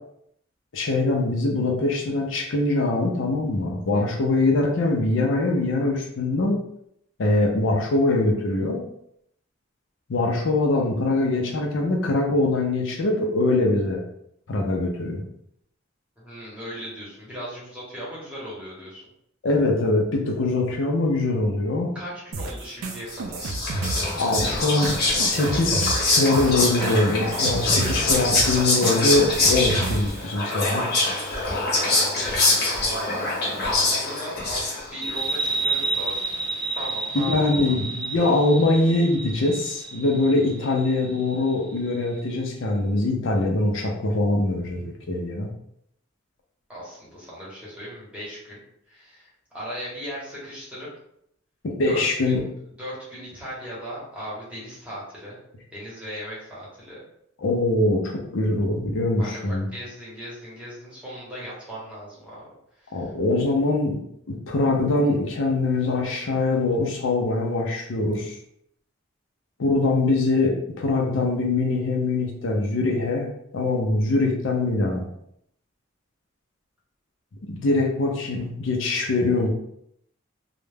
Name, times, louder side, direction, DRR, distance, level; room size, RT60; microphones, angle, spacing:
voice 1, 0.7-6.6 7.2-8.8 10.1-14.0 14.5-15.2 19.4-21.9 24.2-30.8 37.1-45.5 51.6-52.4 57.4-59.7 62.9-64.0 64.3-68.4 69.6-73.3 73.5-75.1 77.5-79.5, left 2 dB, 65° left, 0 dB, 0.5 m, -23 dB
voice 2, 16.2-19.0 21.9-23.4 31.8-36.2 36.7-37.6 46.7-48.6 48.9-50.9 51.9-52.4 52.8-55.4 55.7-57.0 59.2-62.4 62.8-63.1, equal, 5° right, -8 dB, 0.9 m, -38 dB
sound 1, 22.3-30.2, right 3 dB, 90° right, 0.4 m, -31 dB
Whispering, 23.1-35.1, left 2 dB, 50° left, 0.9 m, -24 dB
sound 2, 35.0-42.2, right 3 dB, 20° right, 0.4 m, -30 dB
2.3 x 2.1 x 3.2 m, 0.73 s
head